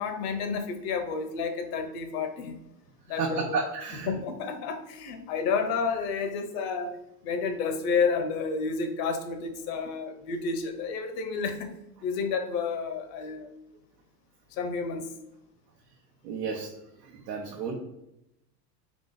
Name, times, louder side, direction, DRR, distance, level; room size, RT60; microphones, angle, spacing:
voice 1, 0.0-2.6 3.1-3.6 4.1-7.0 7.2-11.7 12.0-13.5 14.5-15.1, left 5 dB, 50° left, 7 dB, 0.8 m, -30 dB
voice 2, 3.0-4.1 16.2-16.7 17.0-17.8, right 5 dB, 85° right, 0 dB, 0.8 m, -32 dB
3.7 x 3.0 x 3.9 m, 0.86 s
hypercardioid pair, 105°, 48 cm